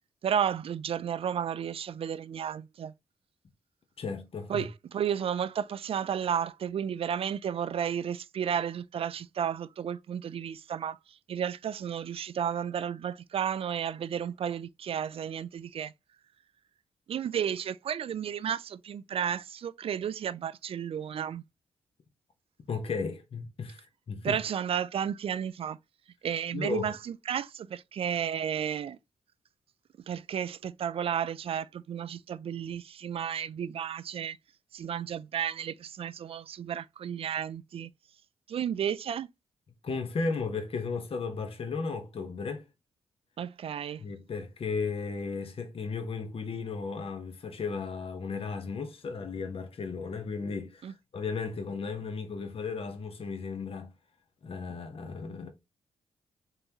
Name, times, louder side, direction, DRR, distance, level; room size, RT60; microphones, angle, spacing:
voice 1, 0.2-2.9 4.5-15.9 17.1-21.4 24.2-25.8 26.2-27.0 27.3-29.0 30.1-34.4 34.7-37.9 38.5-39.3 43.4-44.0 50.8-50.9, right 8 dB, 55° right, 0.4 m, -32 dB
voice 2, 4.0-4.7 22.7-24.4 26.5-26.9 39.8-42.7 44.0-53.9 54.4-55.5, left 4 dB, 55° left, 1.0 m, -35 dB
4.0 x 3.7 x 2.9 m
hypercardioid pair, 40°, 12 cm